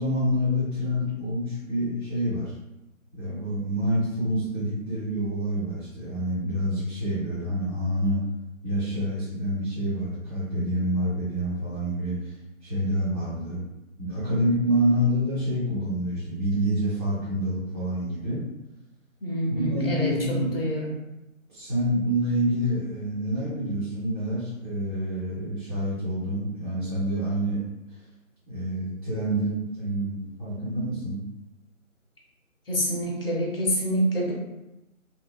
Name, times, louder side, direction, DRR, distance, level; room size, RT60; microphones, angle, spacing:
voice 1, 0.0-2.5 3.1-8.2 8.6-12.3 12.6-13.6 14.0-18.4 19.5-20.6 21.5-27.6 28.5-31.2, equal, 25° right, -15 dB, 0.8 m, -27 dB
voice 2, 19.2-21.0 32.7-34.3, equal, 45° left, -3 dB, 0.6 m, -27 dB
3.0 x 2.0 x 2.3 m, 0.94 s
figure-of-eight pair, 160°, 41 cm